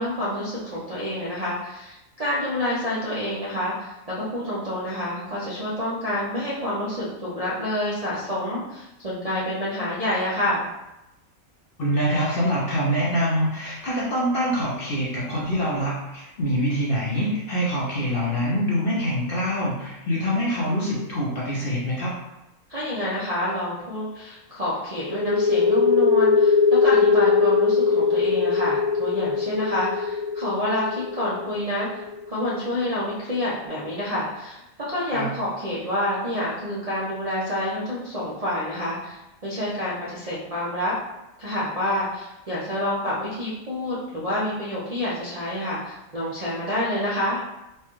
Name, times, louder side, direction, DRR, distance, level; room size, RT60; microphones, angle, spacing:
voice 1, 0.0-10.7 22.7-32.0 32.3-40.9 41.4-47.4, left 1 dB, 45° right, -10 dB, 0.5 m, -28 dB
voice 2, 11.8-22.1 35.1-35.3, equal, 50° left, -5 dB, 0.8 m, -25 dB
sound 1, 25.1-32.5, left 5 dB, 85° left, 1.1 m, -20 dB
4.4 x 2.2 x 3.0 m, 0.94 s
omnidirectional pair, 1.5 m